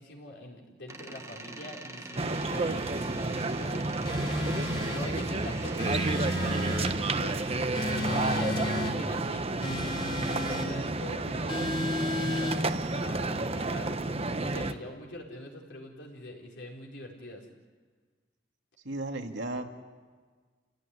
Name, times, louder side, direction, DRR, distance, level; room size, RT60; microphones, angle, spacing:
voice 1, 0.0-4.4 4.8-7.5 8.0-11.8 12.2-17.5, left 1 dB, 70° left, 0 dB, 4.7 m, -44 dB
Door, 0.9-9.4, right 2 dB, 15° right, 1.5 m, -45 dB
sound 1, 2.2-14.7, right 2 dB, 35° right, 1.1 m, -31 dB
sound 2, 4.0-5.1 5.8-7.0 7.7-9.0 9.6-10.7 11.5-12.6, left 2 dB, 25° left, 3.0 m, -33 dB
voice 2, 18.8-19.6, right 2 dB, 75° right, 3 dB, 2.3 m, -36 dB
29.5 x 17.0 x 9.9 m, 1.5 s
head